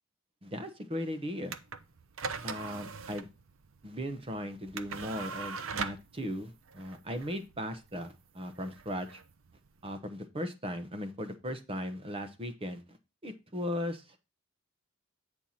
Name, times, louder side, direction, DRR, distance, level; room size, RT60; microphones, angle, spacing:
voice 1, 0.4-1.6 2.4-3.3 3.8-9.2 9.8-12.8 13.2-14.0, equal, 25° right, 8 dB, 0.9 m, -37 dB
sound 1, 1.4-9.9, right 5 dB, 65° right, 0.7 m, -41 dB
8.9 x 4.5 x 4.1 m, 0.28 s
head